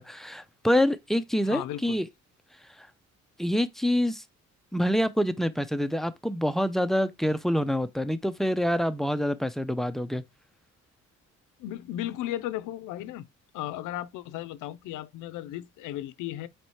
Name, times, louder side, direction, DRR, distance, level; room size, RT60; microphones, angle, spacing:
voice 1, 0.0-2.1 3.4-4.2 4.7-10.2, equal, ahead, 0.3 m, -26 dB
voice 2, 1.5-2.0 11.6-13.3 13.5-16.5, left 13 dB, 85° left, 0.5 m, -35 dB
4.2 x 3.2 x 3.0 m
cardioid pair, 90°, 30 cm